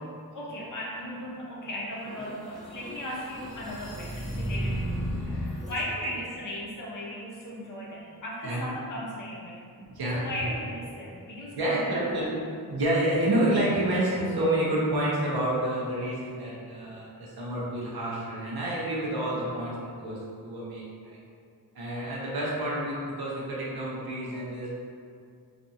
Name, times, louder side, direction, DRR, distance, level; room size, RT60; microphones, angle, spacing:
voice 1, 0.3-9.6 10.1-12.5, left 1 dB, 60° left, -5 dB, 0.5 m, -37 dB
sound 1, 2.0-5.8, equal, ahead, 0.4 m, -34 dB
voice 2, 8.4-8.8 9.8-10.6 10.9-11.0 11.6-12.3 12.7-21.2 21.7-24.7, right 1 dB, 90° right, -6 dB, 0.7 m, -29 dB
2.6 x 2.3 x 2.7 m, 2.3 s
wide cardioid pair, 125°, 37 cm